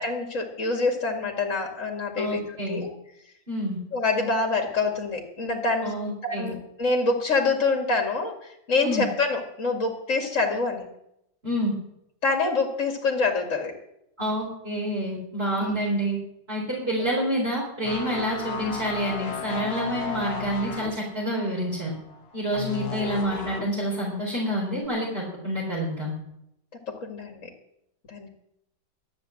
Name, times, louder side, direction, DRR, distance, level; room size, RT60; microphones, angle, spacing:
voice 1, 0.0-2.9 3.9-6.0 6.2-10.9 12.2-13.7 15.6-15.7 16.8-17.0 26.9-27.5 28.1-28.3, left 3 dB, 45° left, 1 dB, 2.4 m, -26 dB
voice 2, 2.2-2.8 3.5-3.8 5.8-6.5 8.8-9.1 11.4-11.7 14.2-16.2 16.5-21.9 22.3-26.1, equal, 35° right, -5 dB, 4.4 m, -28 dB
sound 1, 17.8-23.8 24.2-24.5, left 5 dB, 60° left, 1.8 m, -34 dB
13.5 x 9.7 x 7.7 m, 0.79 s
omnidirectional pair, 1.9 m